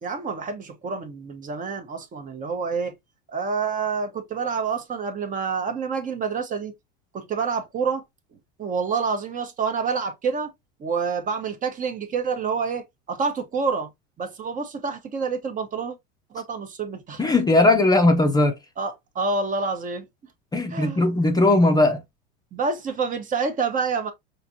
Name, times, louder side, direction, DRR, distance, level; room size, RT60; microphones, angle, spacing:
voice 1, 0.0-3.0 3.3-6.7 7.1-8.0 8.6-10.5 10.8-13.9 14.2-16.0 16.3-17.2 18.8-20.0 20.7-21.1 22.5-24.1, right 5 dB, 25° right, 0.9 m, -27 dB
voice 2, 17.2-18.6 20.5-22.0, left 2 dB, 15° left, 0.7 m, -18 dB
5.7 x 2.6 x 2.6 m
supercardioid pair, 115°, 29 cm